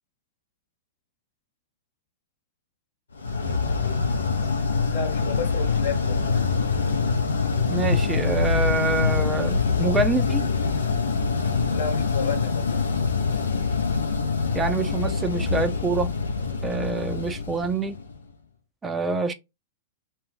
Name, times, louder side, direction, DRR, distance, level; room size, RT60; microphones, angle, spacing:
sound 1, 3.2-18.2, left 4 dB, 80° left, 0.6 m, -25 dB
voice 1, 4.9-6.2 11.7-12.6, left 5 dB, 65° left, 1.0 m, -31 dB
voice 2, 7.7-10.5 14.5-16.1 16.6-18.0 18.8-19.3, right 3 dB, 15° right, 0.4 m, -26 dB
2.4 x 2.1 x 3.1 m
figure-of-eight pair, 100°, 0 cm